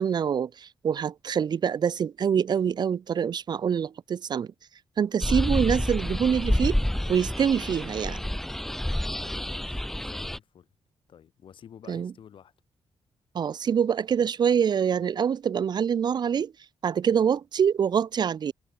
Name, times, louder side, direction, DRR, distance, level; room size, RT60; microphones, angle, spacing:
voice 1, 0.0-4.5 5.0-6.8 7.1-8.2 11.9-12.1 13.3-16.5 16.8-18.5, right 7 dB, 50° right, 0.8 m, -25 dB
sound 1, 5.2-10.4, left 1 dB, 5° left, 0.3 m, -28 dB
voice 2, 9.2-10.7 11.1-12.5, left 8 dB, 65° left, 4.2 m, -50 dB
wide cardioid pair, 135°, 9 cm